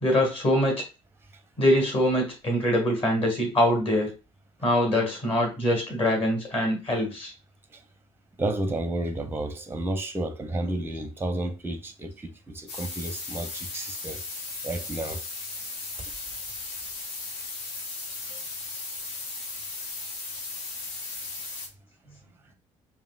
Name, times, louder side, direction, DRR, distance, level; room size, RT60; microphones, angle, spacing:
voice 1, 0.0-0.8 1.6-4.1 4.6-7.3, left 1 dB, 35° left, 2.0 m, -23 dB
voice 2, 8.4-14.2 14.6-15.2, right 1 dB, 15° right, 0.7 m, -31 dB
sound 1, 12.7-21.7, left 3 dB, 60° left, 1.0 m, -36 dB
5.0 x 2.5 x 2.4 m
figure-of-eight pair, 55°, 17 cm